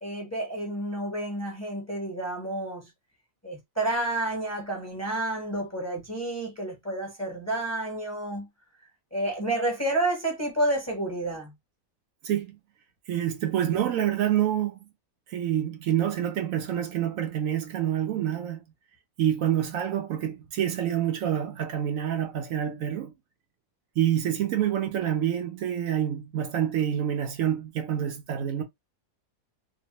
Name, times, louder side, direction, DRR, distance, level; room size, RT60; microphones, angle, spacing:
voice 1, 0.0-2.9 3.4-8.5 9.1-11.5, right 1 dB, 15° left, 0.7 m, -30 dB
voice 2, 12.2-12.6 13.1-14.9 15.3-18.6 19.2-23.1 24.0-28.6, right 10 dB, 75° right, 1.0 m, -27 dB
2.9 x 2.0 x 2.8 m
omnidirectional pair, 1.5 m